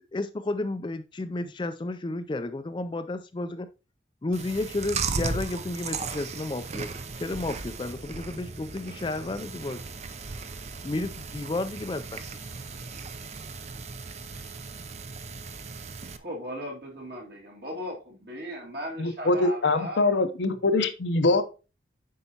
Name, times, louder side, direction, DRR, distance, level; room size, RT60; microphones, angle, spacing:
voice 1, 0.1-3.7 4.2-6.9 7.2-9.8 10.8-12.2, left 2 dB, 25° left, 0.4 m, -32 dB
Chewing mastication, 4.3-16.2, right 4 dB, 35° right, 0.5 m, -36 dB
voice 2, 16.2-20.1, equal, 55° right, 2.2 m, -37 dB
voice 3, 19.0-21.4, left 2 dB, 75° left, 0.7 m, -23 dB
7.9 x 5.6 x 2.8 m
head